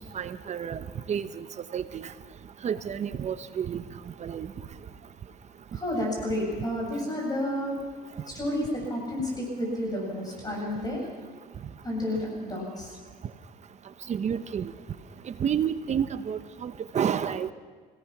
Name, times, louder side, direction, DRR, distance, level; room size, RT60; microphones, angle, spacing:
voice 1, 0.1-0.8 1.1-1.4 1.7-2.1 2.6-3.8 4.2-4.5 14.1-14.7 15.4-17.5, right 8 dB, 45° right, 12 dB, 0.9 m, -30 dB
voice 2, 5.7-7.7 8.3-11.0 11.8-12.9, left 1 dB, 20° left, -1 dB, 7.3 m, -30 dB
25.5 x 18.0 x 6.0 m, 1.5 s
cardioid pair, 110°, 17 cm